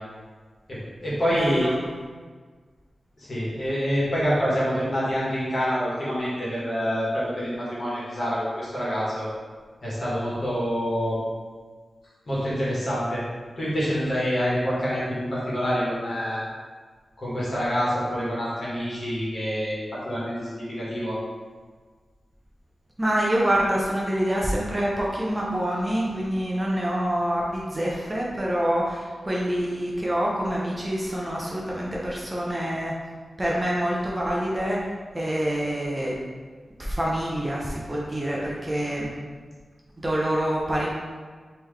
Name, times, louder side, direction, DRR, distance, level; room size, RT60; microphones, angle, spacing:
voice 1, 0.7-1.7 3.2-9.3 9.8-11.2 12.3-13.2 13.6-16.4 17.2-21.2, equal, 45° left, -8 dB, 1.4 m, -26 dB
voice 2, 1.3-1.8 23.0-32.9 33.4-34.8 35.1-36.2 36.8-39.1 40.0-40.9, equal, 20° right, -4 dB, 0.5 m, -26 dB
3.7 x 3.0 x 3.2 m, 1.5 s
wide cardioid pair, 150°, 0 cm